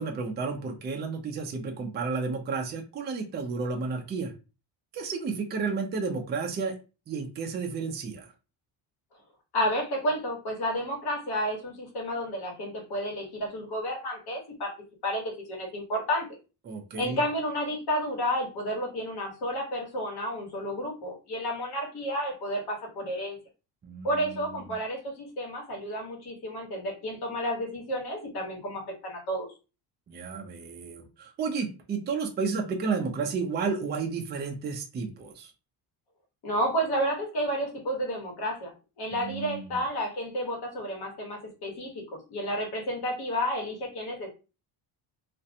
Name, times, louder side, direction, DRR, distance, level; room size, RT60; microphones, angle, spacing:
voice 1, 0.0-4.3 4.9-6.7 7.1-8.3 16.7-17.2 23.8-24.7 30.1-35.5 39.1-39.8, right 4 dB, 25° right, 3 dB, 0.4 m, -32 dB
voice 2, 9.5-14.7 15.0-16.3 16.9-23.4 24.0-29.5 36.4-42.0 42.3-44.3, equal, 60° left, 0 dB, 1.2 m, -31 dB
2.5 x 2.1 x 2.7 m, 0.31 s
cardioid pair, 150°, 44 cm